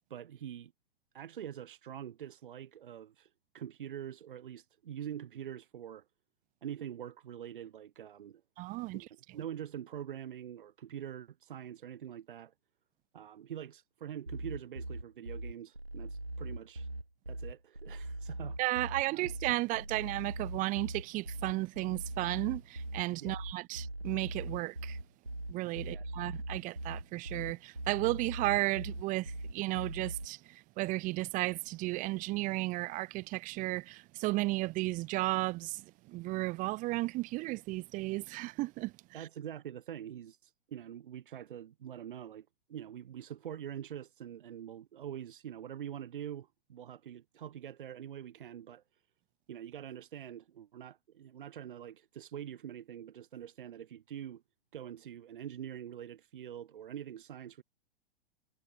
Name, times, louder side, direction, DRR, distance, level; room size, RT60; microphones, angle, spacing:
voice 1, 0.1-0.7 1.1-6.1 6.6-8.4 8.9-9.1 9.3-12.5 13.1-16.9 17.3-18.6 19.1-19.2 23.2-23.4 25.8-26.1 39.1-49.0 49.5-54.4 54.7-57.6, right 10 dB, 60° right, 2.3 m, -44 dB
voice 2, 8.6-9.0 18.6-25.0 25.5-38.9, right 20 dB, 25° right, 0.9 m, -34 dB
sound 1, 14.3-30.3, right 1 dB, 90° right, 3.3 m, -41 dB
figure-of-eight pair, 100°, 29 cm